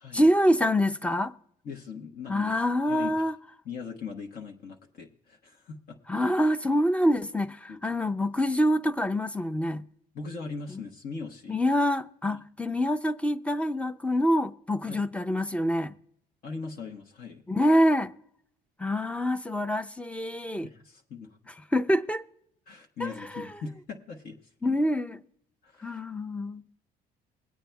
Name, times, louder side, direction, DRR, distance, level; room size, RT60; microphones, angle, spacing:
voice 1, 0.1-1.3 2.3-3.3 6.1-9.8 11.5-15.9 17.5-18.1 18.8-20.7 21.7-22.3 23.0-23.4 24.6-25.2 25.8-26.6, equal, 5° left, 0.4 m, -26 dB
voice 2, 1.6-2.6 2.9-3.3 3.6-6.0 7.7-7.8 10.1-11.6 12.3-12.4 14.8-15.1 16.4-17.4 20.6-21.4 22.7-24.4 24.6-24.8 25.6-26.0, left 5 dB, 60° left, 1.2 m, -40 dB
22.5 x 8.6 x 2.3 m
cardioid pair, 110°, 17 cm